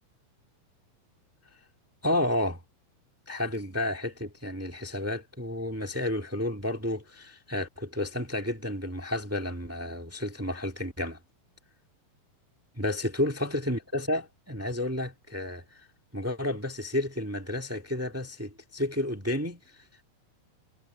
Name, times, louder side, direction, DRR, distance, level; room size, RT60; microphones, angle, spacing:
voice 1, 2.0-2.6 3.3-11.2 12.8-15.9 16.1-20.0, left 1 dB, 20° right, 0.4 m, -31 dB
omnidirectional pair, 3.9 m